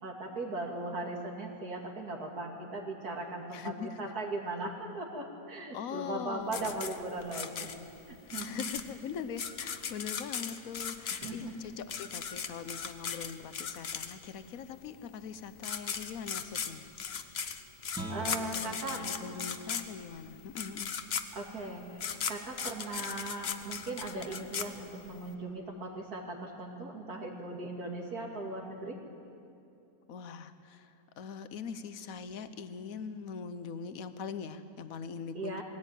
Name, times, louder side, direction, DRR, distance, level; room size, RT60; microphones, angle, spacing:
voice 1, 0.0-7.7 8.1-8.7 11.1-11.7 18.1-19.0 21.3-29.0 35.3-35.6, right 2 dB, 75° right, 1 dB, 3.0 m, -38 dB
voice 2, 3.5-4.1 5.7-6.8 8.3-16.8 18.2-20.9 30.1-35.6, left 6 dB, 65° left, 11 dB, 1.3 m, -42 dB
sound 1, 6.5-14.4 15.3-15.4 15.6-25.3, left 7 dB, 50° left, 1.0 m, -37 dB
Guitar, 17.9-23.5, right 1 dB, 5° right, 2.1 m, -47 dB
21.0 x 16.0 x 9.1 m, 2.6 s
omnidirectional pair, 1.6 m